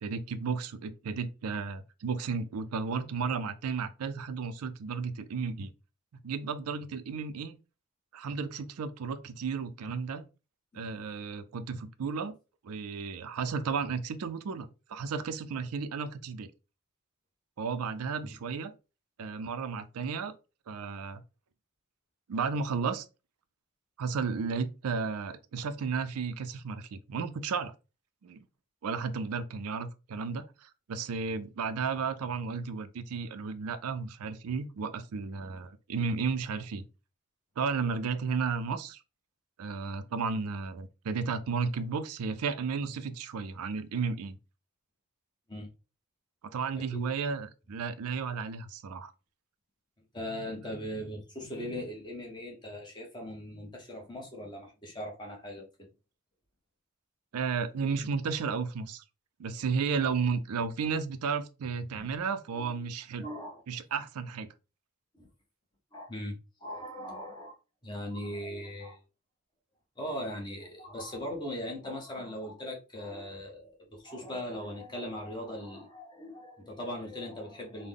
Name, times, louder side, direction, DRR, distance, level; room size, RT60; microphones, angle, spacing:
voice 1, 0.0-5.7 6.2-7.6 8.1-10.3 10.7-12.4 12.6-16.5 17.6-18.7 19.2-20.4 20.7-21.2 22.3-23.1 24.0-27.7 28.2-28.4 28.8-36.8 37.6-39.0 39.6-44.4 46.5-49.1 57.3-59.0 59.4-63.3 63.7-64.5, right 5 dB, 85° right, 0.4 m, -33 dB
voice 2, 10.7-11.0 18.2-18.3 45.5-45.7 46.8-47.1 50.1-55.9 61.9-62.1 62.5-62.8 63.2-63.6 65.1-65.3 65.9-67.6 67.8-69.0 70.0-77.9, left 1 dB, 20° left, 0.9 m, -39 dB
3.7 x 2.1 x 3.4 m
head